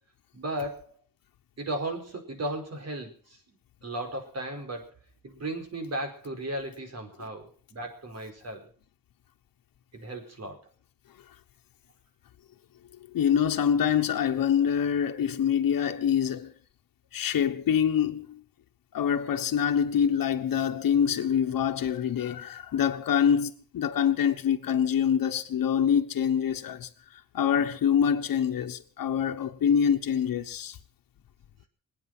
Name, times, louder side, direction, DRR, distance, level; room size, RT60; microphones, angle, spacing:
voice 1, 0.3-0.9 1.6-3.4 3.8-4.9 5.2-8.7 9.9-10.7, right 1 dB, 50° right, 4.9 m, -35 dB
voice 2, 13.1-16.5 17.1-18.4 18.9-26.9 27.3-30.8, left 8 dB, 80° left, 1.2 m, -25 dB
25.5 x 9.0 x 6.1 m
wide cardioid pair, 130°, 34 cm